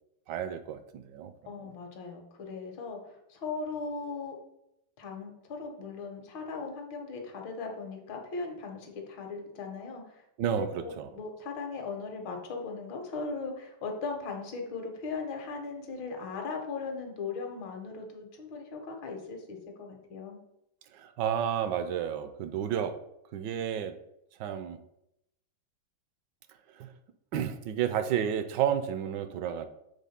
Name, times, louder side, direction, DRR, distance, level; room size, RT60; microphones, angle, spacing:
voice 1, 0.3-1.5 10.4-11.1 20.9-23.0 23.3-24.0 24.4-24.8 26.7-26.9 27.3-29.7, right 9 dB, 70° right, 10 dB, 1.2 m, -31 dB
voice 2, 1.5-4.3 5.0-10.2 10.6-20.4, left 4 dB, 75° left, 3 dB, 1.9 m, -38 dB
7.3 x 3.5 x 5.7 m, 0.81 s
omnidirectional pair, 2.2 m